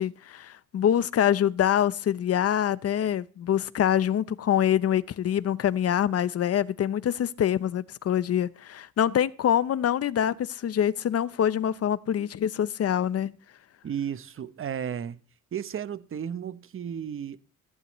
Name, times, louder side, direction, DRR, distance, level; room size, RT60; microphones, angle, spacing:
voice 1, 0.0-13.3, left 10 dB, 55° left, 0.8 m, -25 dB
voice 2, 13.8-15.2 15.5-17.4, right 8 dB, 45° right, 0.9 m, -33 dB
15.5 x 15.0 x 3.1 m
cardioid pair, 90°, 30 cm